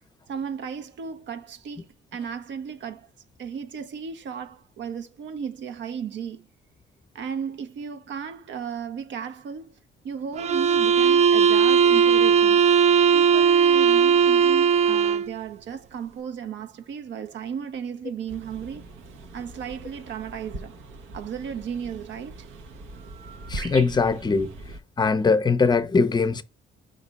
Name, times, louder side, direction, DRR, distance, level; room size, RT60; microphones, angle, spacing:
voice 1, 0.3-3.1 3.4-6.5 7.1-9.7 10.0-12.6 13.1-18.9 19.3-20.7 21.1-22.5, right 7 dB, 65° right, 0.7 m, -35 dB
sound 1, 10.4-15.3, right 7 dB, 35° right, 0.4 m, -18 dB
sound 2, 18.3-24.8, right 2 dB, 90° right, 1.0 m, -41 dB
voice 2, 23.5-24.5 25.0-26.4, left 4 dB, 20° left, 0.5 m, -21 dB
4.9 x 2.6 x 4.0 m
cardioid pair, 90°, 20 cm